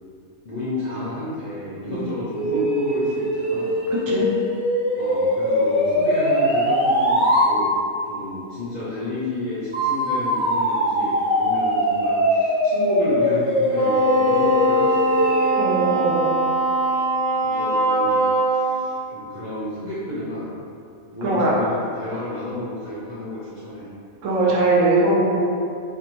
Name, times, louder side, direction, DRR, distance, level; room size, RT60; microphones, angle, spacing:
voice 1, 0.4-3.7 5.0-7.7 8.1-15.3 17.4-18.2 18.5-20.5 21.1-23.9, left 1 dB, 45° left, -12 dB, 0.6 m, -31 dB
sound 1, 2.3-7.5 9.7-15.6, equal, 40° right, 1.3 m, -21 dB
voice 2, 3.9-4.2 15.6-16.3 21.2-21.5 24.2-25.4, right 2 dB, 75° right, -5 dB, 1.0 m, -20 dB
Wind instrument woodwind instrument, 13.7-18.8, right 1 dB, 75° left, 1.0 m, -21 dB
2.6 x 2.5 x 2.9 m, 2.5 s
omnidirectional pair, 1.4 m